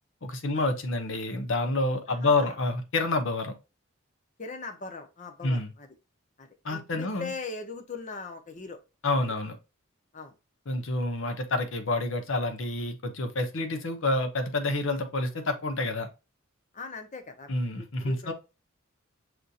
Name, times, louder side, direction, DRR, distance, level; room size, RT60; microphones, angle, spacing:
voice 1, 0.2-3.5 5.4-5.7 6.6-7.3 9.0-9.6 10.7-16.1 17.5-18.3, left 2 dB, 70° left, 6 dB, 0.8 m, -28 dB
voice 2, 2.1-2.6 4.4-5.9 6.4-8.8 10.1-10.3 16.7-18.3, left 3 dB, 35° left, 6 dB, 0.7 m, -40 dB
6.0 x 2.7 x 2.4 m, 0.28 s
head